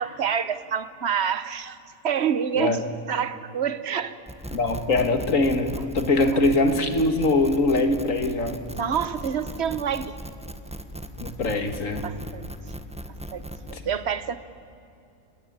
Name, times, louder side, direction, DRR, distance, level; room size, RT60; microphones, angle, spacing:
voice 1, 0.0-1.8 2.0-2.8 3.1-4.1 8.7-10.1 12.0-12.5 13.3-13.4 13.9-14.4, right 8 dB, 55° right, 13 dB, 1.3 m, -27 dB
sound 1, 4.3-13.8, right 1 dB, 5° right, 1.2 m, -38 dB
voice 2, 4.5-8.6 11.2-12.0 13.7-13.8, left 2 dB, 80° left, 7 dB, 2.3 m, -22 dB
29.0 x 20.0 x 8.9 m, 2.5 s
omnidirectional pair, 1.3 m